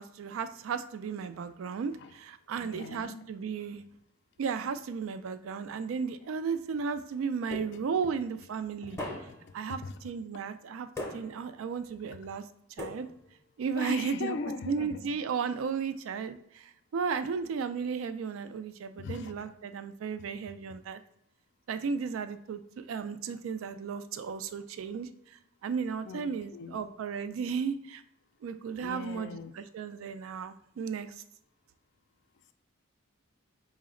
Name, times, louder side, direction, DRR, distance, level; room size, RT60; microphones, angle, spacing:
voice 1, 0.0-3.8 4.4-9.0 9.5-10.9 11.1-12.4 12.8-13.1 13.6-14.4 14.7-21.0 21.7-28.0 28.4-31.2, right 6 dB, 70° right, 11 dB, 0.3 m, -34 dB
voice 2, 2.5-3.2 8.8-9.0 9.3-9.4 9.7-10.0 13.8-15.1 19.0-19.5 20.7-20.8 26.0-26.9 28.8-29.5, left 4 dB, 55° left, 9 dB, 0.3 m, -40 dB
sound 1, 7.5-8.1 9.0-9.6 11.0-11.6 12.8-13.4, left 1 dB, 15° left, 0.6 m, -40 dB
4.8 x 2.0 x 3.7 m, 0.77 s
head